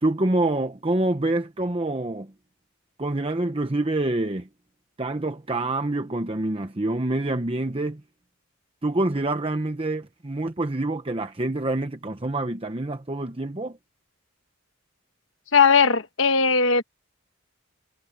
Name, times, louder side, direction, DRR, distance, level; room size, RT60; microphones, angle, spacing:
voice 1, 0.0-2.3 3.0-4.5 5.0-8.0 8.8-13.8, right 2 dB, 25° right, 0.9 m, -26 dB
voice 2, 15.5-16.8, left 5 dB, 65° left, 1.2 m, -18 dB
head